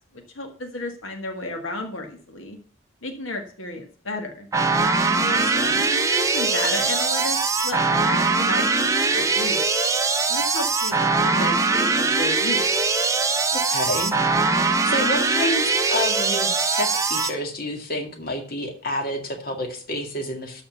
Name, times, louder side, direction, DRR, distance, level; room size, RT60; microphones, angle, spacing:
voice 1, 0.4-2.6 3.0-4.5 5.2-5.5 5.9-7.4 7.6-9.6 10.3-12.6, left 2 dB, 80° left, 4 dB, 1.7 m, -32 dB
sound 1, 4.5-17.3, right 4 dB, 15° right, 0.8 m, -21 dB
voice 2, 5.1-5.9 13.5-14.2 14.5-20.6, left 1 dB, 45° left, 3 dB, 2.0 m, -29 dB
12.5 x 4.2 x 6.9 m, 0.44 s
head